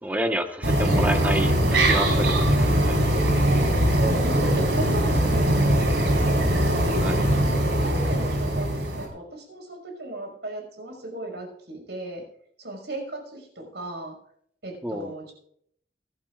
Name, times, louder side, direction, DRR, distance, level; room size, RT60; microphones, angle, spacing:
voice 1, 0.0-2.5 2.8-3.0 7.0-7.3 14.8-15.1, equal, 10° right, 5 dB, 1.3 m, -29 dB
sound 1, 0.6-9.1, right 1 dB, 90° right, 5.0 m, -21 dB
voice 2, 3.9-7.1 7.8-12.2 12.6-14.1 14.6-15.3, right 2 dB, 70° right, 2 dB, 5.8 m, -36 dB
24.0 x 12.5 x 2.5 m, 0.67 s
head